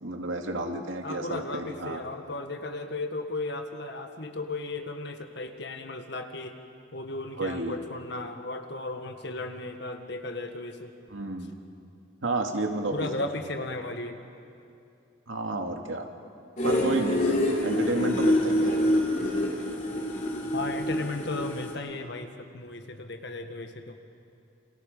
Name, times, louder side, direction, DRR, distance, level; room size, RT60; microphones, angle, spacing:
voice 1, 0.0-2.0 7.4-7.8 11.1-11.6 12.2-13.3 15.3-16.1 16.6-18.8, right 2 dB, 80° right, 4 dB, 2.2 m, -31 dB
voice 2, 1.0-6.6 6.9-10.9 12.9-14.2 20.5-24.0, left 2 dB, 55° left, 6 dB, 1.7 m, -35 dB
sound 1, 16.6-21.7, left 1 dB, 35° left, 3.4 m, -26 dB
29.5 x 26.5 x 5.5 m, 2.6 s
head